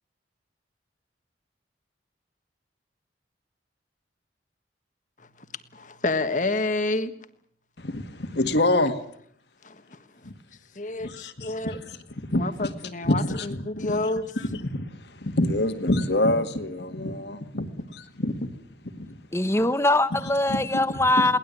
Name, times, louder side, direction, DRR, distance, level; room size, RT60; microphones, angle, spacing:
voice 1, 5.7-7.1 9.6-10.0 10.7-11.8 12.3-14.3, left 2 dB, 40° left, 1.5 m, -29 dB
voice 2, 7.8-8.9 10.2-10.3 11.0-12.0 12.2-12.7 13.0-13.5 13.8-14.0 14.6-14.9 15.2-18.5 18.9-19.1 20.5-20.8 21.2-21.4, left 1 dB, 65° left, 1.9 m, -26 dB
voice 3, 19.3-21.4, left 1 dB, 15° left, 0.9 m, -22 dB
22.5 x 19.0 x 8.4 m
head